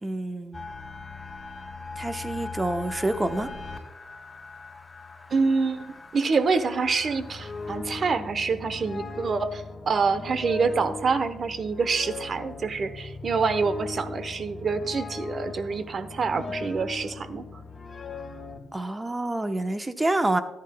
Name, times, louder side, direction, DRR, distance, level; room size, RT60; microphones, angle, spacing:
voice 1, 0.0-0.7 2.0-3.5 18.7-20.4, right 2 dB, 20° right, 8 dB, 0.9 m, -27 dB
sound 1, 0.5-7.8, left 4 dB, 25° left, 3.5 m, -41 dB
voice 2, 5.3-17.4, right 4 dB, 50° right, 12 dB, 0.8 m, -26 dB
sound 2, 6.9-18.6, left 3 dB, 40° left, 2.0 m, -38 dB
14.0 x 9.8 x 2.3 m, 1.0 s
supercardioid pair, 65°, 0 cm